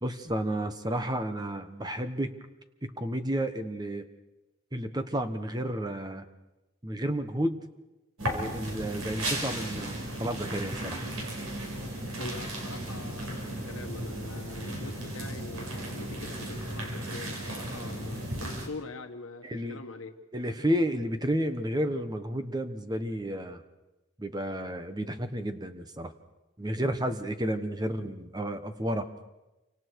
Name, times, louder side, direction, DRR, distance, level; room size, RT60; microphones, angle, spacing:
voice 1, 0.0-2.3 2.8-4.1 4.7-6.3 6.8-7.6 8.2-11.0 17.7-17.8 19.4-19.8 20.3-23.6 24.2-26.1 26.6-29.1, equal, 20° right, 8 dB, 1.2 m, -31 dB
sound 1, 8.2-18.7, right 1 dB, 90° right, 5.0 m, -35 dB
voice 2, 12.2-20.1 26.8-26.9, left 3 dB, 75° left, 5 dB, 1.3 m, -43 dB
28.5 x 25.0 x 4.8 m, 1.0 s
head